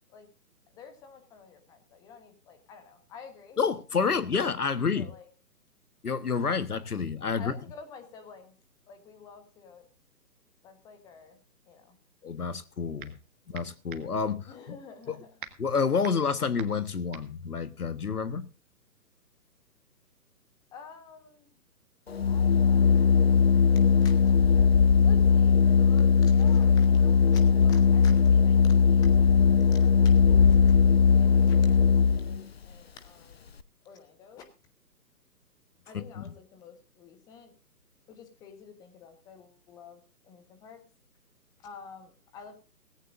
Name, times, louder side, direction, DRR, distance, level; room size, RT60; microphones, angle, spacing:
voice 1, 0.7-3.6 4.3-4.5 5.0-5.3 7.4-8.5 8.9-9.8 10.6-11.4 11.7-12.0 14.5-15.3 20.7-21.5 22.2-22.8 24.0-33.5 33.8-34.4 35.9-37.5 38.1-40.8 41.6-42.5, left 6 dB, 5° left, 1.2 m, -50 dB
voice 2, 3.6-5.1 6.0-7.5 12.2-13.1 13.5-14.8 15.1-15.2 15.6-18.5 30.3-30.6 35.9-36.3, left 5 dB, 65° left, 1.4 m, -29 dB
sound 1, 12.5-13.3 13.5-18.5, right 8 dB, 30° right, 1.7 m, -47 dB
Organ, 22.1-32.4, left 6 dB, 40° left, 0.6 m, -20 dB
18.0 x 16.5 x 2.5 m
figure-of-eight pair, 140°, 49 cm